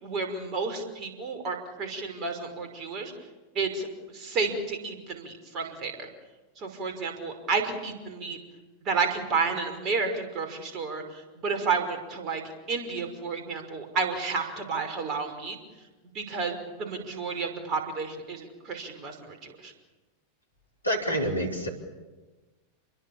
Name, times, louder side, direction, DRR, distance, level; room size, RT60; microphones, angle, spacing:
voice 1, 0.0-3.1 3.6-3.9 4.1-6.1 6.6-8.4 8.8-12.4 12.7-15.6 16.1-19.7, right 4 dB, 35° right, 5 dB, 5.6 m, -31 dB
voice 2, 20.8-21.7, equal, 85° left, 1 dB, 4.8 m, -27 dB
29.0 x 22.0 x 7.3 m, 1.2 s
figure-of-eight pair, 90°, 0 cm